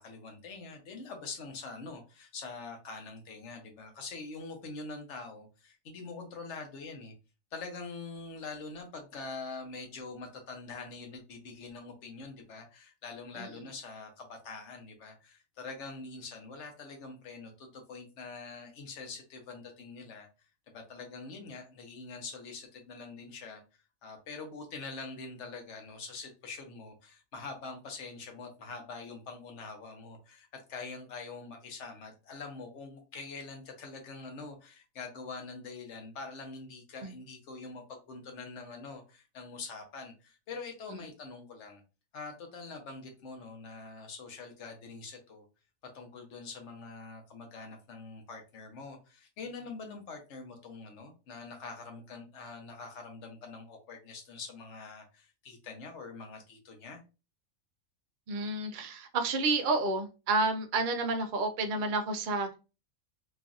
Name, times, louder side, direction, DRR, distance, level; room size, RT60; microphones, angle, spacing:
voice 1, 0.0-7.1 7.5-20.3 20.7-23.6 24.0-41.8 42.1-45.4 45.9-57.0, left 4 dB, 60° left, 3 dB, 1.0 m, -44 dB
voice 2, 58.3-62.6, right 3 dB, 70° right, 5 dB, 0.4 m, -30 dB
3.0 x 2.6 x 2.4 m, 0.31 s
omnidirectional pair, 1.4 m